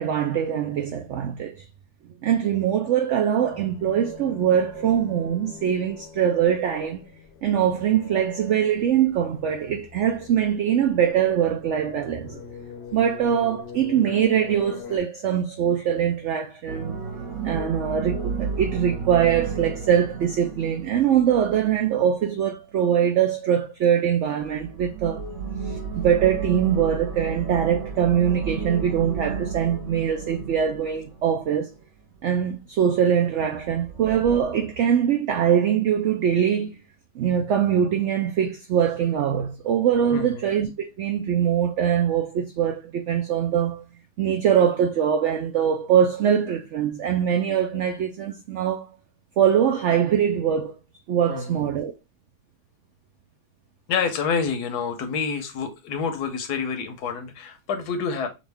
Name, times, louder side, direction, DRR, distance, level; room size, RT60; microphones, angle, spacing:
voice 1, 0.0-1.6 2.2-7.0 7.4-12.4 12.9-17.0 17.4-25.2 25.7-31.7 32.2-36.8 37.2-43.8 44.2-48.9 49.4-50.7 51.1-51.9, right 9 dB, 70° right, 0.7 m, -22 dB
sound 1, 3.4-15.0, left 6 dB, 55° left, 0.8 m, -43 dB
sound 2, 16.7-22.0 24.4-31.7 33.7-34.4, right 5 dB, 50° right, 1.5 m, -33 dB
voice 2, 40.1-40.5 47.7-47.8 51.3-51.7 53.9-58.3, left 5 dB, 85° left, 1.4 m, -28 dB
6.2 x 2.4 x 3.4 m
omnidirectional pair, 1.7 m